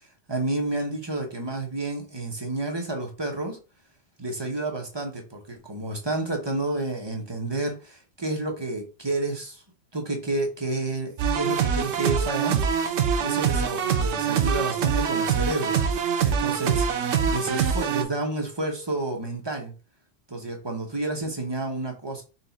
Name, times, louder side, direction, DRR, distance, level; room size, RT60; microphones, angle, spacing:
voice 1, 0.3-3.6 4.2-9.6 9.9-12.9 13.2-15.8 16.2-16.9 17.3-19.7 20.3-22.2, right 2 dB, 25° right, 0.6 m, -30 dB
sound 1, 11.2-18.0, right 7 dB, 75° right, 0.9 m, -24 dB
4.2 x 2.3 x 3.9 m
omnidirectional pair, 1.2 m